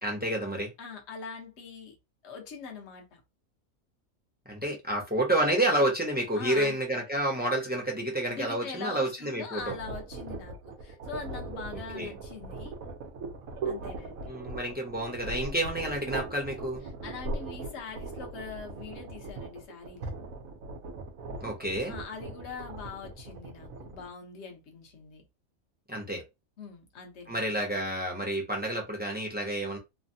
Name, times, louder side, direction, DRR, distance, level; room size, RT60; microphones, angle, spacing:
voice 1, 0.0-0.7 4.5-9.7 11.9-12.1 14.3-16.8 21.4-21.9 25.9-26.2 27.3-29.8, right 1 dB, 10° right, 0.6 m, -29 dB
voice 2, 0.8-1.9 2.2-3.2 6.3-6.8 8.3-12.7 13.6-14.3 17.0-20.2 21.9-25.2 26.6-27.6, left 5 dB, 55° left, 1.1 m, -42 dB
sound 1, 9.6-24.1, right 3 dB, 70° right, 1.2 m, -39 dB
3.2 x 2.2 x 2.7 m
omnidirectional pair, 1.5 m